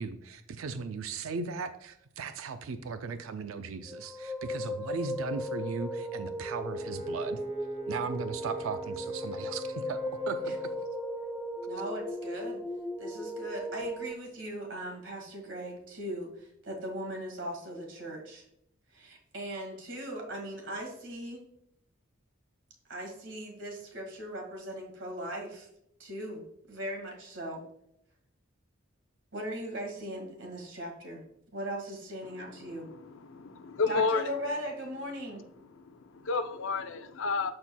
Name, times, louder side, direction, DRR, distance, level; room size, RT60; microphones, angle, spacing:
voice 1, 0.0-7.4 7.9-10.0 10.3-10.5, right 5 dB, 80° right, 10 dB, 0.4 m, -37 dB
sound 1, 3.9-14.1, equal, 5° left, 0.4 m, -36 dB
Brass instrument, 6.6-10.9, right 1 dB, 30° right, 1.0 m, -50 dB
voice 2, 11.7-12.6 13.0-18.5 18.9-21.4 22.9-25.7 26.0-26.4 26.7-27.6 29.3-31.2 31.5-32.9 33.9-35.4, right 1 dB, 60° right, 1 dB, 1.9 m, -39 dB
voice 3, 32.6-34.3 35.8-37.5, left 4 dB, 65° left, 10 dB, 0.5 m, -31 dB
13.0 x 4.3 x 2.2 m, 0.76 s
head